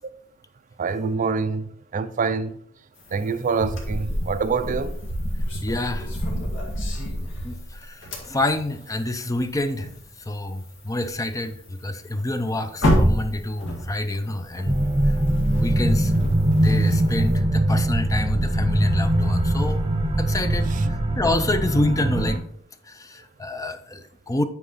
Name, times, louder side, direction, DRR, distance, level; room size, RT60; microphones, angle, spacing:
voice 1, 0.8-2.6 3.1-5.0 20.7-20.9, right 5 dB, 40° right, 0.4 m, -26 dB
sound 1, 3.0-10.2 10.5-10.6 11.0-11.5 11.8-11.9 12.2-17.4, equal, 70° left, 2.0 m, -28 dB
voice 2, 5.6-6.1 7.2-9.9 10.3-15.2 15.5-16.1 16.5-19.8 20.2-20.7 21.2-22.4 22.9-24.4, left 1 dB, 15° left, 0.5 m, -27 dB
sound 2, 14.7-22.4, right 1 dB, 25° right, 0.8 m, -22 dB
8.4 x 4.8 x 4.0 m
head